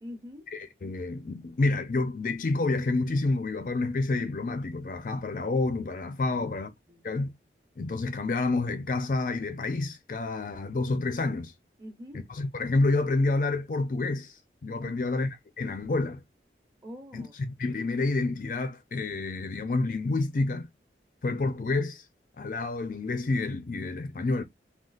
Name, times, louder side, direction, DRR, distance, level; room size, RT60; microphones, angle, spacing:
voice 1, 0.0-0.4 6.3-7.0 11.8-12.2 14.8-15.2 16.8-17.3, left 1 dB, 20° right, 0.9 m, -45 dB
voice 2, 0.5-6.7 7.0-7.3 7.8-11.5 12.1-16.2 17.1-20.7 21.2-22.0 22.4-24.4, left 3 dB, 50° left, 0.4 m, -29 dB
3.7 x 2.3 x 2.4 m
head